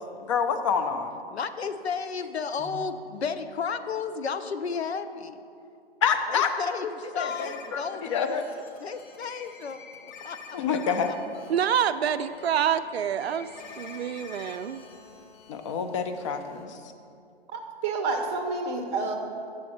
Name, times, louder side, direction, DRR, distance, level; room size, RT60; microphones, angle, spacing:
voice 1, 0.2-1.2 6.0-6.5 7.1-8.5 10.5-11.2 15.5-16.8, left 6 dB, 30° left, 7 dB, 0.5 m, -27 dB
voice 2, 1.3-5.4 6.3-8.2 8.8-10.6, left 5 dB, 90° left, 10 dB, 0.6 m, -33 dB
sound 1, 7.3-16.7, left 5 dB, 45° left, 1.0 m, -47 dB
voice 3, 11.5-13.5 13.8-14.8, right 9 dB, 75° right, 12 dB, 0.5 m, -27 dB
voice 4, 17.5-19.1, right 3 dB, 20° right, 3 dB, 0.6 m, -29 dB
7.4 x 6.3 x 4.3 m, 2.5 s
hypercardioid pair, 135°, 31 cm